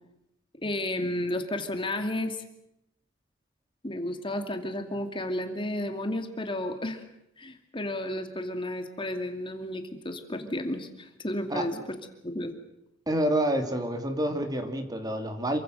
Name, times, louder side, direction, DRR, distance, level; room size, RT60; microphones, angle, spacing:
voice 1, 0.6-2.4 3.8-7.0 7.4-12.0 12.2-12.5, left 1 dB, 25° left, 6 dB, 2.4 m, -32 dB
voice 2, 13.1-15.6, right 1 dB, 20° right, 6 dB, 2.7 m, -28 dB
28.0 x 23.5 x 6.7 m, 0.81 s
head